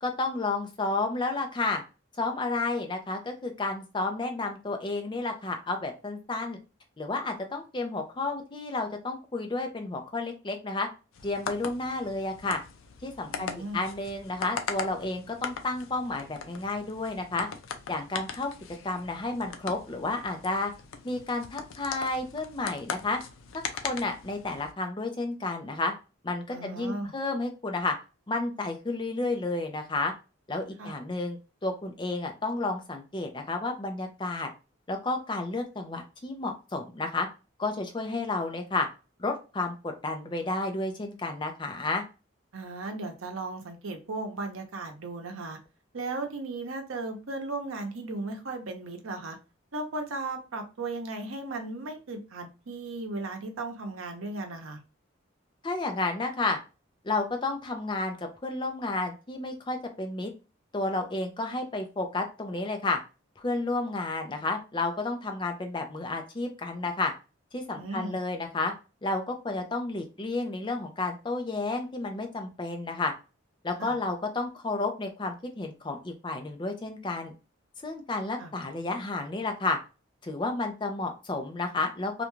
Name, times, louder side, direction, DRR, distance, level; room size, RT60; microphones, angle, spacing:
voice 1, 0.0-1.8 2.2-6.6 7.0-10.9 11.2-12.6 13.0-17.5 17.9-18.5 18.8-20.7 21.0-23.2 23.8-25.9 26.2-27.9 28.3-30.1 30.5-34.5 34.9-37.3 37.6-38.9 39.2-42.0 55.6-56.6 57.0-60.3 60.7-63.0 63.4-67.1 67.5-68.7 69.0-73.1 73.6-77.3 77.8-79.8 80.2-82.2, left 2 dB, 25° left, 4 dB, 0.5 m, -31 dB
sound 1, 11.1-24.7, left 6 dB, 85° left, 0.4 m, -40 dB
voice 2, 13.3-13.8 26.5-27.1 30.8-31.0 42.5-45.6 45.9-49.4 49.7-54.8 67.8-68.2 73.8-74.0 78.4-78.5, right 2 dB, 90° right, 4 dB, 0.7 m, -36 dB
2.5 x 2.2 x 3.0 m, 0.31 s
head